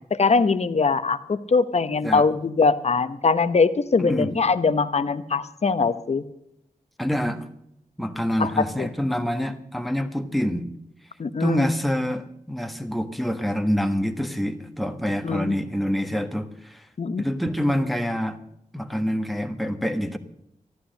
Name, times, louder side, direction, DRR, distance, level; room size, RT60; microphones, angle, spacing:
voice 1, 0.2-6.3 8.4-8.9 11.2-11.7 15.2-15.6 17.0-17.2, left 4 dB, 50° left, 13 dB, 0.9 m, -22 dB
voice 2, 4.0-4.3 7.0-7.4 8.0-10.7 11.4-16.8 17.2-18.4 18.7-20.2, equal, ahead, 7 dB, 1.4 m, -26 dB
13.5 x 11.5 x 6.4 m, 0.76 s
cardioid pair, 60°, 14 cm